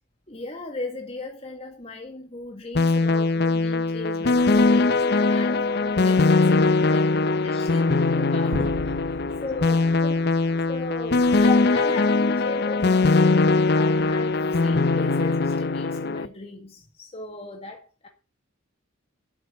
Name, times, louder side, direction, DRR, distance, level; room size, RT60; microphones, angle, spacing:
voice 1, 0.3-18.1, left 3 dB, 30° left, 2.0 m, -37 dB
sound 1, 2.7-16.3, left 3 dB, 55° left, 0.7 m, -21 dB
sound 2, 8.5-11.1, right 1 dB, 55° right, 1.6 m, -37 dB
12.0 x 8.8 x 7.0 m
head